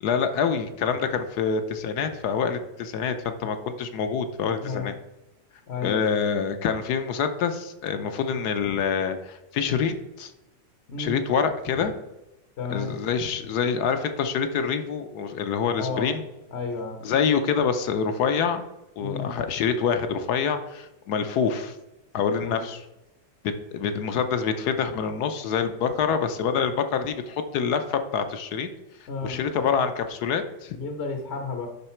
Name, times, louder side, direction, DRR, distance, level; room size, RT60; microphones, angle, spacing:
voice 1, 0.0-4.9 5.8-10.3 11.0-11.9 12.7-16.2 17.0-18.6 19.0-21.8 22.1-22.8 23.4-28.7 29.2-30.8, left 6 dB, 65° left, 8 dB, 1.2 m, -26 dB
voice 2, 4.6-5.0 5.7-6.0 10.9-11.2 12.6-13.0 15.8-16.1 16.5-17.0 19.0-19.4 22.3-22.6 29.1-29.5 30.7-31.7, left 4 dB, 50° left, 5 dB, 0.9 m, -32 dB
11.5 x 3.9 x 4.4 m, 0.99 s
omnidirectional pair, 2.0 m